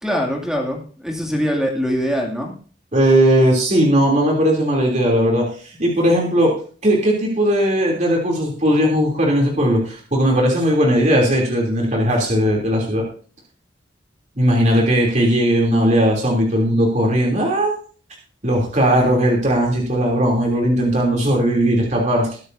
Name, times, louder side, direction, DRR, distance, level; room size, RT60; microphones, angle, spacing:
voice 1, 0.0-2.5, equal, 5° right, 0 dB, 2.5 m, -23 dB
voice 2, 2.9-5.5 5.8-6.5 6.8-13.0 14.4-17.7 18.4-22.4, equal, 40° right, -1 dB, 3.1 m, -17 dB
21.0 x 9.4 x 2.7 m, 0.41 s
head